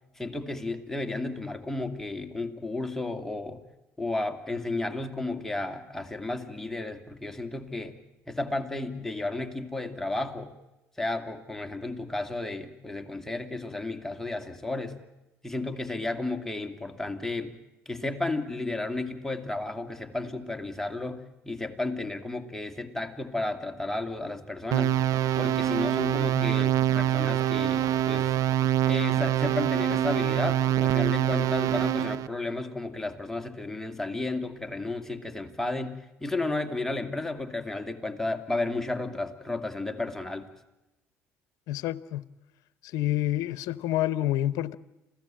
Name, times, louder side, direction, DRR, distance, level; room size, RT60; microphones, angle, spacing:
voice 1, 0.2-3.6 4.0-8.0 8.3-10.5 11.0-14.9 15.4-17.5 17.9-24.9 25.4-28.3 28.9-40.5, left 2 dB, 5° left, 2.5 m, -33 dB
sound 1, 24.7-32.3, right 11 dB, 65° right, 0.9 m, -25 dB
voice 2, 41.7-42.3 42.8-44.8, left 13 dB, 70° left, 0.8 m, -28 dB
27.5 x 16.5 x 8.9 m
hypercardioid pair, 70°, 6 cm